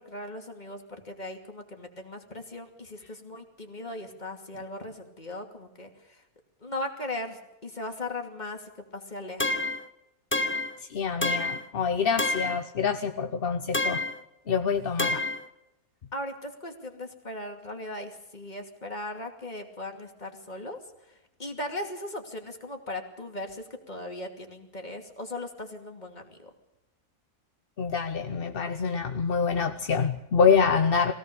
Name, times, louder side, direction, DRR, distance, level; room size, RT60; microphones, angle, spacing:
voice 1, 0.0-6.2 6.6-9.6 16.1-20.8 21.1-26.5, left 1 dB, 30° left, 3 dB, 2.7 m, -38 dB
sound 1, 9.4-9.9 10.3-10.8 11.2-11.7 12.2-12.6 13.7-14.2 15.0-15.4, left 2 dB, 15° left, 0.5 m, -28 dB
voice 2, 10.9-14.0 14.5-15.2 27.8-31.1, left 6 dB, 45° left, 7 dB, 0.9 m, -26 dB
22.5 x 17.0 x 6.8 m, 0.95 s
omnidirectional pair, 1.6 m